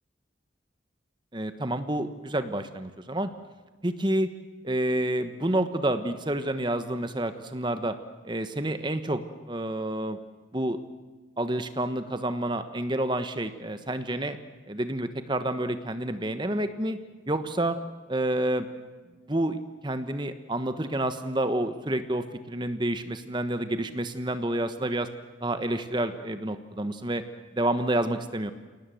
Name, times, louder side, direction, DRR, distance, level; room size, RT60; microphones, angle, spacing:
voice 1, 1.3-3.3 3.8-4.3 4.6-7.9 8.2-9.2 9.5-10.2 10.5-10.8 11.4-14.4 14.7-17.0 17.3-17.8 18.1-18.7 19.3-19.6 19.8-25.1 25.4-27.2 27.5-28.5, right 1 dB, 25° right, 9 dB, 1.3 m, -29 dB
28.5 x 18.5 x 7.9 m, 1.3 s
head